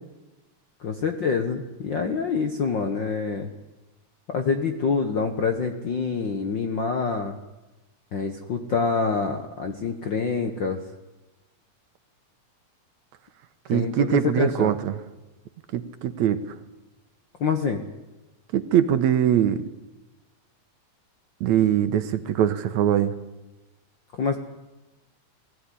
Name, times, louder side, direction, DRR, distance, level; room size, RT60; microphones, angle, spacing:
voice 1, 0.8-3.5 4.3-7.4 8.1-10.8 13.7-14.7 17.4-17.8 24.1-24.4, left 5 dB, 55° left, 6 dB, 1.3 m, -26 dB
voice 2, 13.7-14.9 15.7-16.4 18.5-19.7 21.4-23.1, right 10 dB, 70° right, 11 dB, 2.2 m, -22 dB
20.5 x 15.5 x 10.0 m, 1.1 s
omnidirectional pair, 3.6 m